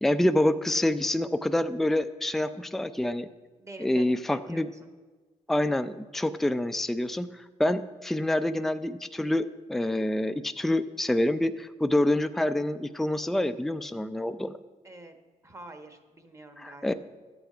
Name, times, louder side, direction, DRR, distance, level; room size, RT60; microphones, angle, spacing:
voice 1, 0.0-3.3 3.8-4.7 5.5-14.5 16.6-16.9, left 1 dB, ahead, 10 dB, 0.4 m, -27 dB
voice 2, 3.6-4.9 14.8-15.2 15.4-16.9, right 1 dB, 20° right, 6 dB, 1.2 m, -46 dB
11.5 x 8.0 x 5.0 m, 1.4 s
cardioid pair, 90°, 13 cm